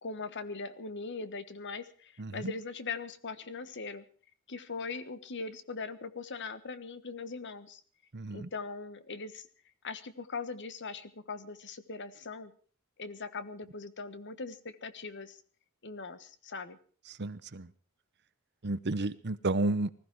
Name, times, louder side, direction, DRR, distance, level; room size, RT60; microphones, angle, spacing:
voice 1, 0.0-4.0 4.5-7.8 8.3-9.5 9.8-12.5 13.0-15.4 15.8-16.8, left 4 dB, 55° left, 13 dB, 1.3 m, -40 dB
voice 2, 2.2-2.5 8.1-8.5 17.1-17.7 18.6-19.9, right 2 dB, 50° right, 15 dB, 0.9 m, -32 dB
20.0 x 14.5 x 4.7 m, 0.43 s
head